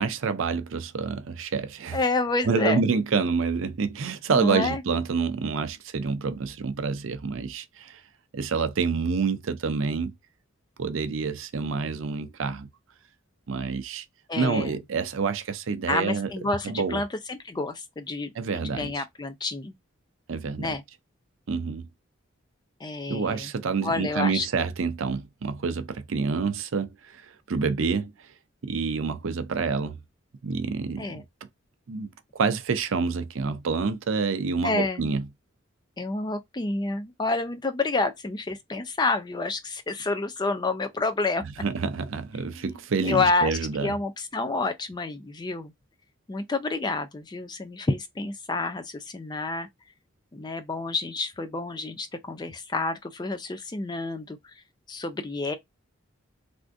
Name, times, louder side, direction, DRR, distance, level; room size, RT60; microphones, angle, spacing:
voice 1, 0.0-2.0 2.5-8.0 8.3-10.1 10.8-12.7 13.5-14.1 14.4-16.3 16.6-17.0 18.4-18.9 20.3-20.7 21.5-21.8 23.1-27.2 27.5-28.1 28.6-30.0 30.4-31.1 31.9-35.2 41.6-43.9, right 5 dB, 70° right, 0.5 m, -27 dB
voice 2, 1.9-2.8 4.3-4.8 14.3-14.8 15.9-19.7 20.6-20.8 22.8-23.5 23.8-24.5 31.0-31.2 34.6-35.1 36.0-41.4 42.5-45.7 46.3-49.7 50.3-54.4 54.9-55.5, left 3 dB, 20° left, 0.4 m, -29 dB
3.4 x 2.5 x 2.5 m
head